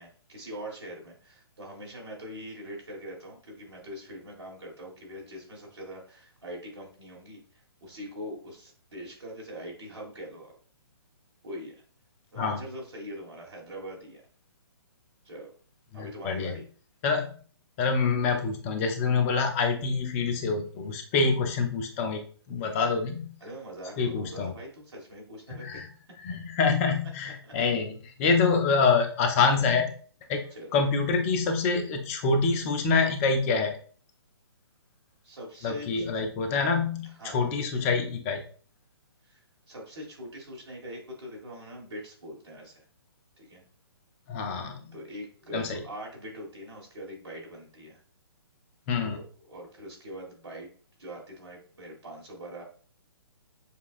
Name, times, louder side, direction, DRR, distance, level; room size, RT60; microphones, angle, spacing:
voice 1, 0.0-10.5 11.4-11.7 12.3-14.2 15.2-15.5 15.9-16.6 23.4-25.8 26.3-26.4 27.2-27.5 30.5-30.7 35.2-36.1 37.0-37.5 39.2-39.4 39.7-42.8 43.4-43.6 44.9-48.0 49.1-50.7 51.0-52.6, equal, 85° right, -3 dB, 1.7 m, -42 dB
voice 2, 15.9-16.5 17.0-17.3 17.8-22.2 22.5-23.3 24.0-24.5 25.5-25.8 26.2-29.9 30.3-30.4 30.7-33.7 35.6-38.4 44.3-44.9 45.5-45.8 48.9-49.2, left 4 dB, 30° left, 5 dB, 0.7 m, -26 dB
6.8 x 2.3 x 2.5 m, 0.43 s
figure-of-eight pair, 135°, 14 cm